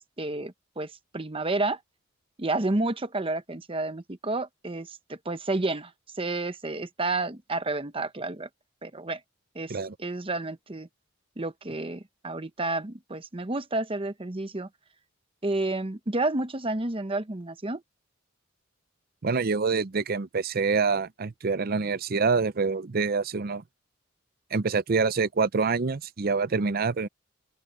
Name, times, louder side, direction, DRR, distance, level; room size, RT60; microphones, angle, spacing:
voice 1, 0.0-1.8 2.4-5.9 6.2-8.5 8.8-9.2 9.5-10.9 11.4-14.7 15.4-17.8, right 2 dB, 25° right, 1.0 m, -30 dB
voice 2, 19.2-23.6 24.5-27.1, right 4 dB, 50° right, 0.6 m, -26 dB
open air
head